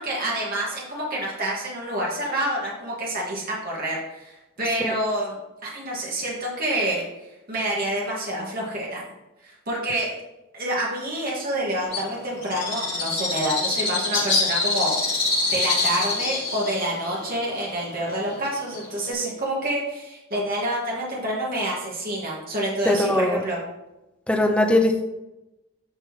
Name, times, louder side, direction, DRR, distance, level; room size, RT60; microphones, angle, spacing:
voice 1, 0.0-4.3 4.6-5.3 5.6-7.1 7.5-9.0 9.4-10.1 10.5-14.9 15.5-23.6, right 1 dB, 40° right, -4 dB, 2.2 m, -27 dB
Bird, 11.9-19.1, left 3 dB, 25° left, 3.0 m, -26 dB
voice 2, 22.8-23.4 24.3-25.0, left 1 dB, 5° left, 2 dB, 0.7 m, -20 dB
10.5 x 5.4 x 3.3 m, 0.95 s
head